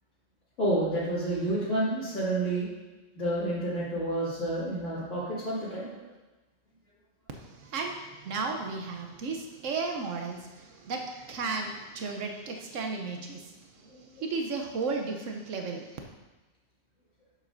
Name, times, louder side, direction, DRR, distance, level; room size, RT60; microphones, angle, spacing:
voice 1, 0.6-2.7 3.1-6.0 13.9-14.0, right 1 dB, 80° left, -10 dB, 2.6 m, -29 dB
voice 2, 7.3-16.0, right 4 dB, 85° right, 3 dB, 1.1 m, -34 dB
10.5 x 7.6 x 2.6 m, 1.1 s
omnidirectional pair, 1.3 m